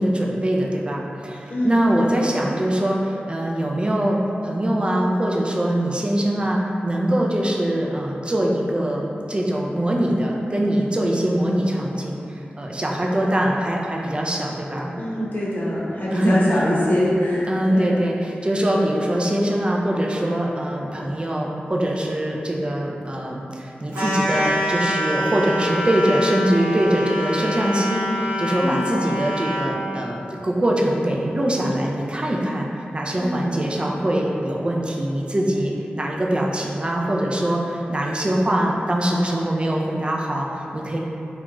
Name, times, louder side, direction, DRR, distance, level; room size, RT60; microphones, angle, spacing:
voice 1, 0.0-14.9 16.1-16.7 17.5-32.7 32.9-41.0, right 1 dB, 25° right, -2 dB, 0.3 m, -23 dB
voice 2, 1.5-2.0 15.0-18.0 28.6-28.8 33.2-33.5, left 1 dB, 50° left, -8 dB, 0.7 m, -24 dB
sound 1, 23.9-29.7, equal, 80° right, 0.7 m, -25 dB
2.4 x 2.2 x 2.9 m, 2.8 s
wide cardioid pair, 60°, 4 cm